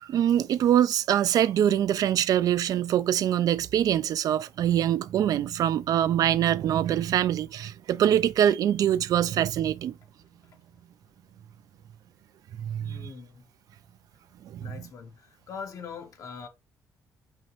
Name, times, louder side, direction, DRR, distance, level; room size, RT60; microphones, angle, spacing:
voice 1, 0.0-9.9 12.6-13.1 14.4-14.7, right 10 dB, 70° right, 0.4 m, -24 dB
voice 2, 12.8-13.5 14.6-16.5, left 5 dB, 55° left, 1.0 m, -42 dB
5.5 x 2.9 x 3.0 m
cardioid pair, 100°, 7 cm